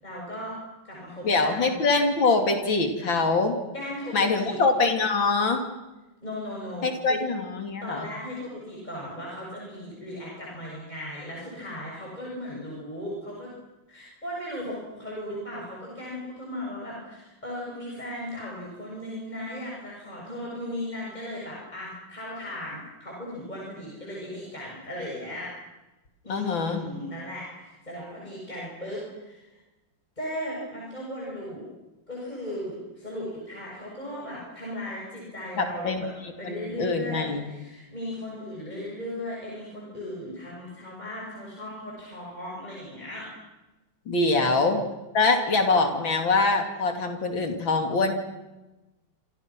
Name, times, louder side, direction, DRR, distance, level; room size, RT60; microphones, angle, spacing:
voice 1, 0.0-0.6 0.8-1.7 3.7-4.6 6.2-7.2 7.8-13.5 13.9-25.5 26.2-29.6 30.2-31.7 32.1-35.9 36.4-43.3 44.3-44.7, left 1 dB, 20° left, -4 dB, 7.2 m, -37 dB
voice 2, 1.2-3.6 4.1-5.7 6.8-8.1 26.3-26.8 35.6-36.0 36.4-37.5 44.1-44.8 45.1-48.1, left 3 dB, 90° left, 5 dB, 3.5 m, -24 dB
28.0 x 26.5 x 6.1 m, 1.0 s
omnidirectional pair, 2.0 m